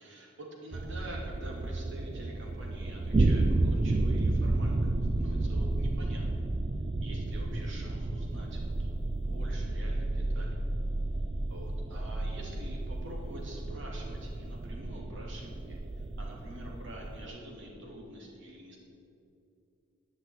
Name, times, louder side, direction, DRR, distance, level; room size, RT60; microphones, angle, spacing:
voice 1, 0.0-4.9 5.2-6.3 7.0-10.6 11.5-15.8 16.2-18.8, right 1 dB, 65° right, -1 dB, 2.6 m, -46 dB
sound 1, 0.7-17.3, right 2 dB, 30° right, 0.4 m, -31 dB
11.5 x 6.0 x 8.6 m, 2.7 s
head